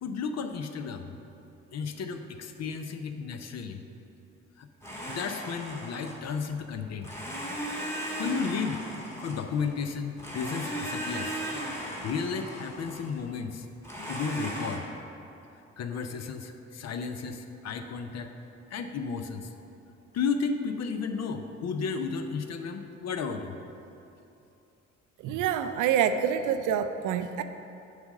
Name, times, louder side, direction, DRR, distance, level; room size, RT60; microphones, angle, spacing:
voice 1, 0.0-1.2 1.7-3.8 4.6-4.7 5.1-7.1 8.2-8.8 9.2-11.4 12.0-13.7 14.1-14.9 15.8-18.3 18.7-19.5 20.1-23.5, left 5 dB, 45° left, 7 dB, 0.7 m, -33 dB
Domestic sounds home sounds, 4.8-6.5 7.0-9.8 10.2-13.2 13.8-14.8, equal, 5° left, 1.6 m, -37 dB
voice 2, 25.2-27.4, right 8 dB, 55° right, 9 dB, 0.5 m, -26 dB
8.0 x 4.9 x 5.4 m, 2.8 s
figure-of-eight pair, 40°, 38 cm